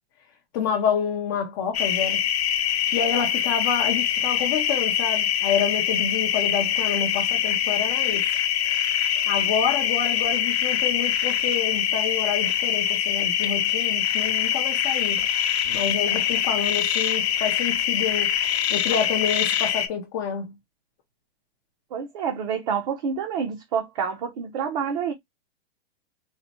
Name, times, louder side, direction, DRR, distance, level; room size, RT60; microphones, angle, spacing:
voice 1, 0.5-2.2 2.9-8.3 9.3-15.2 15.7-18.3 18.7-20.5, left 7 dB, 20° left, 0.4 m, -28 dB
sound 1, 1.7-19.9, left 10 dB, 75° left, 0.9 m, -24 dB
voice 2, 21.9-25.1, right 7 dB, 40° right, 0.7 m, -28 dB
4.0 x 2.1 x 2.8 m
hypercardioid pair, 165°, 32 cm